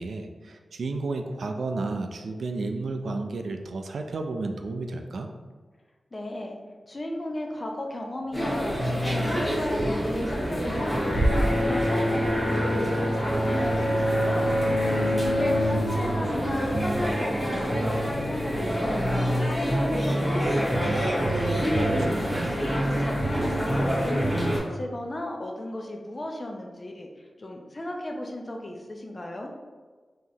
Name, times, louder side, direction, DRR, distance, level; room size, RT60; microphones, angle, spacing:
voice 1, 0.0-5.3 21.7-22.6, right 3 dB, 80° right, 5 dB, 0.4 m, -32 dB
voice 2, 6.1-6.6 6.9-14.5 15.4-21.2 22.4-27.1 27.4-29.5, left 1 dB, 30° left, 1 dB, 0.5 m, -35 dB
sound 1, 8.3-24.6, equal, 5° left, 1.4 m, -27 dB
Bowed string instrument, 10.8-16.3, left 1 dB, 60° left, 1.4 m, -27 dB
sound 2, 11.1-13.1, right 1 dB, 80° left, 1.1 m, -29 dB
4.9 x 2.9 x 2.7 m, 1.4 s
wide cardioid pair, 140°, 0 cm